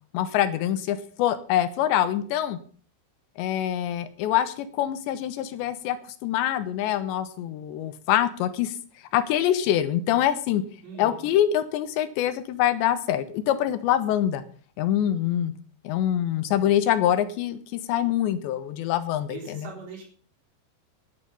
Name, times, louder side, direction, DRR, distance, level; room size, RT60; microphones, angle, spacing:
voice 1, 0.1-2.6 3.4-6.0 6.2-8.7 9.1-10.6 11.0-14.4 14.8-15.5 15.8-19.7, left 11 dB, 85° left, 12 dB, 3.4 m, -25 dB
voice 2, 10.8-11.4 19.3-20.0, right 5 dB, 75° right, 1 dB, 6.1 m, -41 dB
14.5 x 11.0 x 5.6 m, 0.43 s
omnidirectional pair, 5.0 m